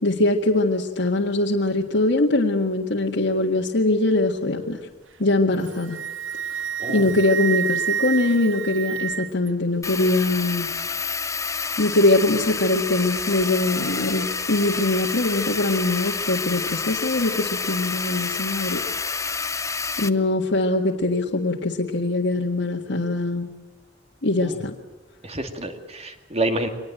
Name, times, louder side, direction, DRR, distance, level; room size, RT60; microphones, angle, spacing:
voice 1, 0.0-4.8 5.2-6.0 6.9-10.7 11.8-18.8 20.0-23.5 24.2-24.7, left 2 dB, 65° left, -2 dB, 1.8 m, -22 dB
Wind instrument woodwind instrument, 5.5-9.5, right 8 dB, 80° right, 0.8 m, -28 dB
voice 2, 6.8-7.2 24.4-24.6 25.2-26.7, right 2 dB, 35° right, 6 dB, 2.4 m, -28 dB
sound 1, 9.8-20.1, left 4 dB, 15° left, 0.8 m, -29 dB
24.0 x 19.5 x 9.0 m, 1.1 s
head